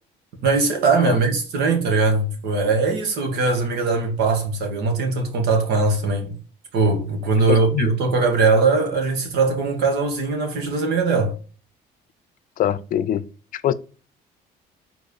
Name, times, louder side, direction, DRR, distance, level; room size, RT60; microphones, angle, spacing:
voice 1, 0.4-6.4 6.7-11.4, right 4 dB, 75° right, 1.9 m, -20 dB
voice 2, 7.5-7.9 12.6-13.2 13.5-13.7, left 10 dB, 55° left, 0.5 m, -23 dB
5.1 x 3.8 x 4.9 m
cardioid pair, 110°, 17 cm